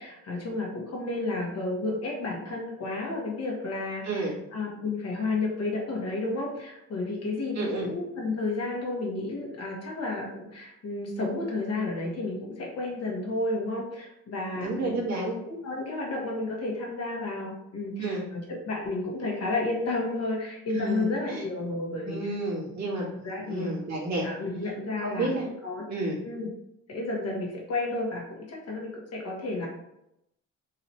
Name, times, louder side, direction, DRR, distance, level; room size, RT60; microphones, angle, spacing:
voice 1, 0.0-22.3 23.2-23.8 24.2-25.8 26.2-26.5 26.9-29.7, left 2 dB, 55° left, -2 dB, 1.3 m, -32 dB
voice 2, 4.0-4.4 7.5-7.9 14.5-15.3 18.0-18.2 20.7-21.4 22.1-24.3 25.0-25.5 25.9-26.2, right 2 dB, 65° right, -4 dB, 1.5 m, -31 dB
3.9 x 2.9 x 2.8 m, 0.82 s
cardioid pair, 90°, 30 cm